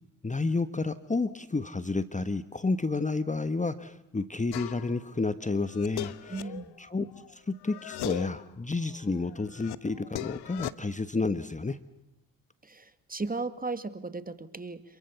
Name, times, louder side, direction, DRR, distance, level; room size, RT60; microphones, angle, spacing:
voice 1, 0.2-6.5 6.8-7.1 7.3-11.8, left 3 dB, 20° left, 12 dB, 1.3 m, -30 dB
sound 1, 4.5-5.0 5.5-7.3 7.6-8.5 8.9-10.7, left 14 dB, 75° left, 1.2 m, -38 dB
voice 2, 6.3-6.7 12.6-14.8, right 3 dB, 20° right, 11 dB, 2.2 m, -36 dB
28.0 x 23.0 x 7.1 m, 0.85 s
supercardioid pair, 55°, 40 cm